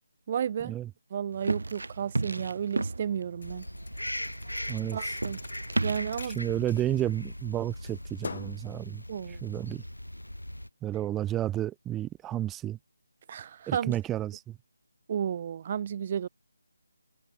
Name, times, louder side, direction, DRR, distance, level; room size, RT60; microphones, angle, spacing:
voice 1, 0.3-0.7 1.1-3.7 4.9-5.4 5.8-6.4 9.1-9.6 13.3-13.9 15.1-16.3, right 8 dB, 30° right, 1.5 m, -32 dB
sound 1, 1.3-7.1, right 2 dB, 65° right, 2.2 m, -35 dB
sound 2, 3.4-10.7, left 1 dB, 85° left, 3.7 m, -40 dB
Thump thud, 3.4-7.4 7.8-8.6, left 4 dB, 50° left, 5.6 m, -44 dB
voice 2, 6.4-9.0 9.4-9.8 10.8-12.8 13.7-14.6, right 13 dB, 10° right, 0.5 m, -31 dB
figure-of-eight pair, 155°, 0 cm